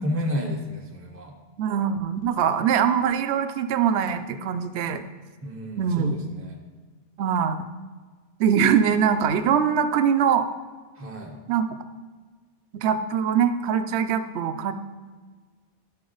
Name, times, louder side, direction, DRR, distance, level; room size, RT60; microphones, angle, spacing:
voice 1, 0.0-1.3 5.4-6.6 11.0-11.4, equal, 15° right, 1 dB, 0.7 m, -31 dB
voice 2, 1.6-5.0 5.8-6.1 7.2-7.6 8.4-10.5 11.5-11.7 12.7-14.7, right 7 dB, 70° right, 9 dB, 0.8 m, -22 dB
12.5 x 4.3 x 3.9 m, 1.5 s
omnidirectional pair, 1.2 m